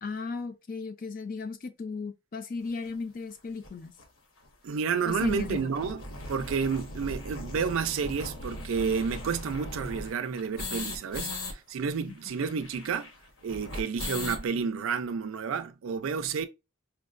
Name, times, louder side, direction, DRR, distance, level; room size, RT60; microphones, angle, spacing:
voice 1, 0.0-3.9 5.1-5.7, left 4 dB, 40° left, 0.4 m, -36 dB
sound 1, 2.8-2.9 3.6-3.7 4.0-4.1 4.4-4.5 4.8-11.5 11.8-11.9 12.1-14.5, left 2 dB, 75° left, 0.9 m, -39 dB
voice 2, 4.6-6.0 6.3-13.1 13.4-16.5, right 6 dB, 85° right, 0.4 m, -30 dB
4.5 x 2.1 x 2.4 m
head